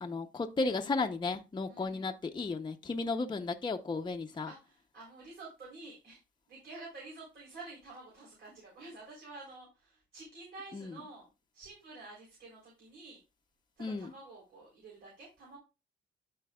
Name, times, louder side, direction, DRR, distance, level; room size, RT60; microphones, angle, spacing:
voice 1, 0.0-4.5 10.7-10.9 13.8-14.1, left 3 dB, 25° left, 4 dB, 0.7 m, -34 dB
voice 2, 1.7-2.2 4.5-6.2 6.5-11.3 11.5-13.2 13.8-15.6, right 3 dB, 60° right, -3 dB, 3.6 m, -50 dB
12.0 x 4.6 x 2.3 m, 0.28 s
cardioid pair, 90°, 20 cm